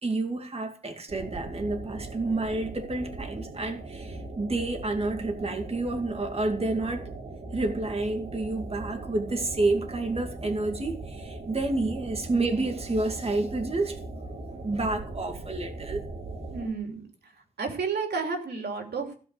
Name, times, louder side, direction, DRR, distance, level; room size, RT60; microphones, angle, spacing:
voice 1, 0.0-7.1 7.5-14.3 14.6-16.0, right 2 dB, 35° right, 2.3 m, -29 dB
sound 1, 1.1-16.7, right 2 dB, 60° right, 3.7 m, -39 dB
voice 2, 16.5-17.3 17.6-19.1, right 4 dB, 90° right, 3.0 m, -32 dB
16.5 x 5.6 x 8.2 m
wide cardioid pair, 80°, 16 cm